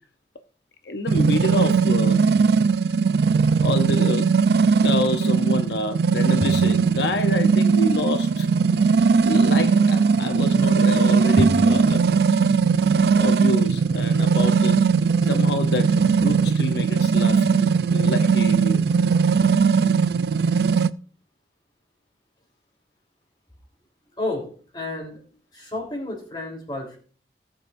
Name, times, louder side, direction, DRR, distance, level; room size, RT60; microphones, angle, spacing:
voice 1, 0.8-2.2 3.6-4.3 4.8-8.5 9.2-12.0 13.2-14.8 15.2-18.8, left 2 dB, 75° left, 0.8 m, -28 dB
sound 1, 1.1-20.9, right 5 dB, 65° right, 0.4 m, -19 dB
sound 2, 6.4-8.1 11.4-12.0, equal, 30° right, 1.1 m, -29 dB
voice 2, 24.2-25.2 25.5-27.0, left 2 dB, 25° left, 3.5 m, -31 dB
18.5 x 7.7 x 2.6 m
head